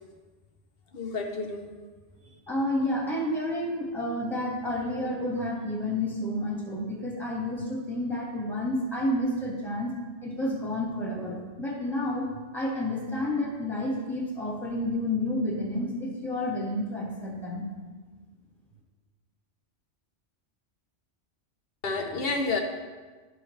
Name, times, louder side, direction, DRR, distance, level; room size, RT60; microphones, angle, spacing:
voice 1, 0.9-1.7 21.8-22.6, left 3 dB, 55° left, 3 dB, 1.1 m, -30 dB
voice 2, 2.5-9.9 10.2-17.7, left 1 dB, ahead, -3 dB, 1.7 m, -30 dB
11.5 x 6.4 x 3.3 m, 1.4 s
omnidirectional pair, 1.2 m